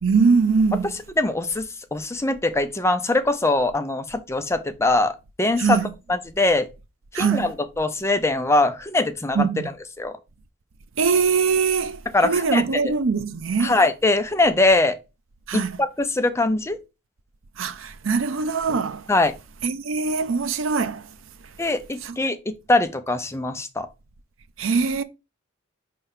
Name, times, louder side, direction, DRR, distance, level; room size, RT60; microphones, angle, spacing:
voice 1, 0.0-0.9 5.6-5.9 7.1-7.5 9.3-9.7 11.0-13.8 15.5-15.8 17.6-19.1 19.6-21.1 22.0-22.2 24.6-25.0, right 5 dB, 70° right, 0.5 m, -22 dB
voice 2, 1.2-5.8 6.1-6.7 7.1-9.4 10.0-10.1 12.1-12.6 13.6-15.0 15.5-16.8 19.1-19.3 21.6-23.9, left 2 dB, 15° left, 0.6 m, -22 dB
5.5 x 3.4 x 5.6 m
head